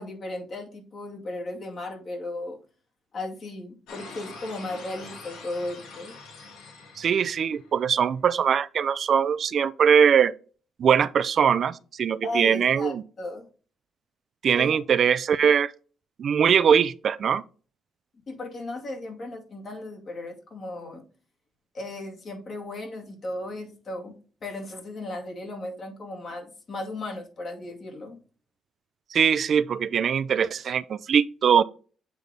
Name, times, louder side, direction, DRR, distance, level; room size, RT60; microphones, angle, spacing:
voice 1, 0.0-2.6 3.1-6.2 12.2-13.5 14.5-14.8 18.3-21.0 21.7-24.2 24.4-28.2, left 2 dB, 50° left, 2.2 m, -36 dB
sound 1, 3.9-8.0, left 4 dB, 85° left, 1.7 m, -44 dB
voice 2, 7.0-10.3 10.8-13.0 14.4-15.7 16.2-17.4 29.1-31.6, right 7 dB, 55° right, 0.3 m, -21 dB
8.1 x 3.4 x 3.9 m
cardioid pair, 90°, 0 cm